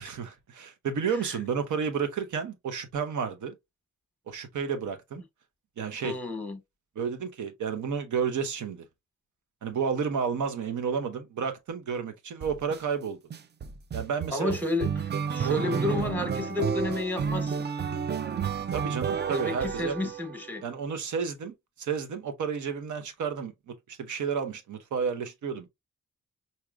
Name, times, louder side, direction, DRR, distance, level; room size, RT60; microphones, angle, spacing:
voice 1, 0.0-3.5 4.3-5.2 5.8-6.2 7.0-8.8 9.6-13.2 13.9-14.6 15.4-15.7 16.2-16.3 18.7-20.0 20.6-25.7, right 6 dB, 80° right, 0.9 m, -31 dB
voice 2, 6.0-6.6 14.3-17.7 19.3-20.6, left 2 dB, 5° left, 1.2 m, -31 dB
sound 1, 12.4-12.8 13.3-20.5, right 6 dB, 35° right, 0.4 m, -31 dB
4.7 x 2.8 x 2.3 m
cardioid pair, 65°, 30 cm